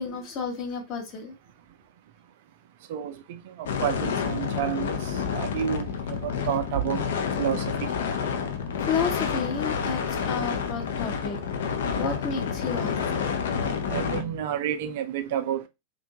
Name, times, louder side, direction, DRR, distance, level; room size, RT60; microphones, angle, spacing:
voice 1, 0.0-1.3 8.8-13.0 13.5-14.4, left 5 dB, 35° left, 0.9 m, -32 dB
voice 2, 2.9-3.4 3.8-5.0 5.3-7.0 7.4-7.7 13.9-15.6, right 10 dB, 50° right, 0.4 m, -29 dB
sound 1, 3.7-14.2, left 6 dB, 60° left, 0.5 m, -29 dB
2.5 x 2.2 x 2.8 m
figure-of-eight pair, 90°, 0 cm